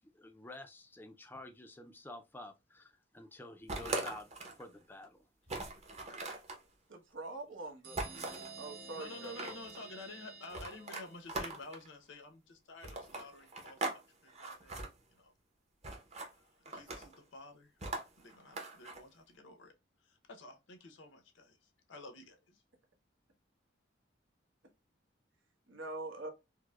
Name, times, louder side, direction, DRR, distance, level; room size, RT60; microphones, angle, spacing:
voice 1, 0.1-4.3 4.6-5.2, left 2 dB, 10° left, 0.4 m, -50 dB
sound 1, 3.7-4.6 5.0-5.1 5.5-6.6 8.0-8.5 9.1-9.8 10.5-11.9 12.8-14.0 14.3-14.9 15.8-16.3 16.7-17.2 17.8-19.0, right 2 dB, 35° right, 0.8 m, -40 dB
voice 2, 6.9-8.0 8.6-9.5 25.7-26.3, right 2 dB, 90° right, 1.0 m, -44 dB
sound 2, 7.8-11.4, right 3 dB, 55° right, 1.0 m, -51 dB
voice 3, 8.9-14.8 15.1-15.3 16.3-17.7 18.2-19.7 20.0-22.6, left 2 dB, 80° left, 0.8 m, -51 dB
4.6 x 2.1 x 2.3 m
head